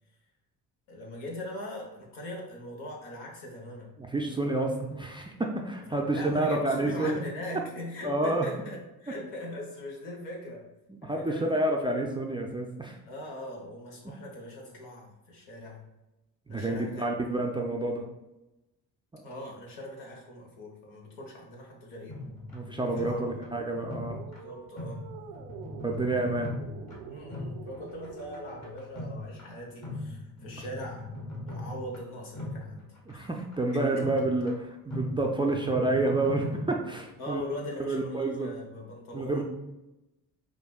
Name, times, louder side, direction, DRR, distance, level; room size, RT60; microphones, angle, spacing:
voice 1, 0.9-4.1 4.4-4.5 5.9-10.7 11.0-11.6 13.0-15.9 16.5-17.1 19.2-22.2 22.8-23.5 24.3-25.1 27.1-31.0 31.4-33.3 33.7-34.1 37.2-39.4, left 1 dB, 80° left, -1 dB, 1.0 m, -41 dB
voice 2, 4.0-7.2 8.0-8.5 10.9-13.0 16.5-18.0 19.1-19.2 22.5-24.2 25.8-26.6 33.1-34.5 34.9-37.4 37.8-38.5 39.1-39.4, right 2 dB, 10° right, 0 dB, 0.3 m, -29 dB
sound 1, 22.1-37.2, left 1 dB, 40° left, 1.3 m, -40 dB
sound 2, 23.9-28.7, right 6 dB, 80° right, 0.5 m, -46 dB
4.8 x 2.3 x 2.3 m, 0.99 s
hypercardioid pair, 50°, 44 cm